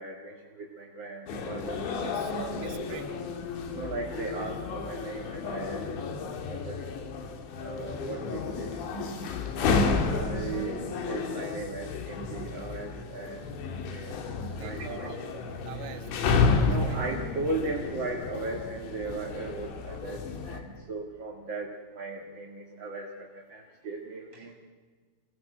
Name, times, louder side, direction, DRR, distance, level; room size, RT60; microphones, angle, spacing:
voice 1, 0.0-1.8 2.8-3.1 3.7-5.9 6.5-6.8 7.6-8.7 9.5-9.7 10.0-13.5 13.9-14.2 14.6-15.1 16.6-24.6, right 3 dB, 40° right, -1 dB, 1.8 m, -37 dB
sound 1, 1.3-20.6, left 4 dB, 90° left, 4.5 m, -31 dB
voice 2, 1.6-3.2 14.5-15.4 15.7-17.0, right 11 dB, 90° right, 7 dB, 3.7 m, -45 dB
29.0 x 20.0 x 7.8 m, 1.5 s
omnidirectional pair, 5.0 m